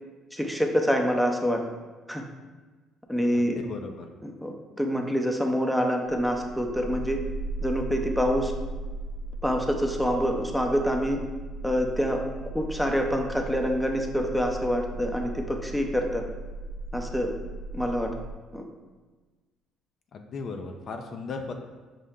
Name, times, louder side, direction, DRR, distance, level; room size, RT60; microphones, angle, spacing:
voice 1, 0.3-1.6 2.1-2.2 3.1-3.6 4.2-7.2 7.6-8.5 9.4-11.2 11.6-12.2 12.5-16.2 16.9-17.3 17.7-18.1 18.5-18.6, equal, ahead, 2 dB, 0.5 m, -26 dB
voice 2, 3.3-4.1 20.1-21.5, left 4 dB, 55° left, 4 dB, 0.4 m, -36 dB
sound 1, 6.1-18.3, right 2 dB, 75° right, 0.4 m, -37 dB
5.3 x 2.1 x 3.6 m, 1.3 s
supercardioid pair, 70°, 0 cm